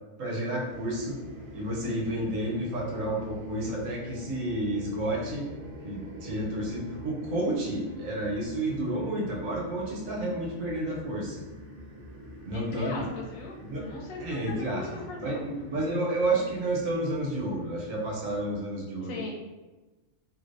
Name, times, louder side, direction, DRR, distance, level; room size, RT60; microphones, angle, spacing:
voice 1, 0.2-1.2 1.5-5.5 5.8-11.4 12.4-13.0 13.6-13.9 14.2-19.3, right 1 dB, 75° right, -2 dB, 1.1 m, -31 dB
sound 1, 0.7-18.6, equal, 60° right, 0.6 m, -46 dB
voice 2, 12.5-15.4 19.0-19.3, left 3 dB, 80° left, -1 dB, 1.1 m, -39 dB
3.1 x 2.7 x 2.5 m, 1.2 s
omnidirectional pair, 1.4 m